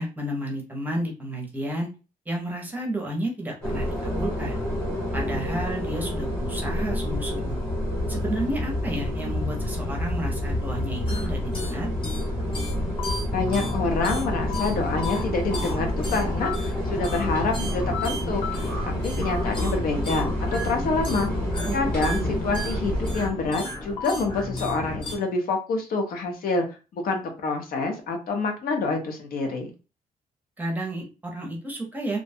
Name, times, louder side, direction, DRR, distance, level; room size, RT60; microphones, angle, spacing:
voice 1, 0.0-1.9 2.3-4.6 5.1-7.6 8.1-11.9 21.7-21.8 22.1-22.3 30.6-32.2, right 1 dB, 10° right, 0 dB, 0.6 m, -31 dB
sound 1, 3.6-23.3, left 1 dB, 5° left, 1.0 m, -28 dB
sound 2, 11.1-25.2, left 2 dB, 35° left, 0.8 m, -34 dB
voice 2, 13.3-21.3 21.7-26.6 26.9-29.7, left 3 dB, 75° left, 4 dB, 0.7 m, -27 dB
2.5 x 2.2 x 2.6 m, 0.32 s
wide cardioid pair, 175°, 15 cm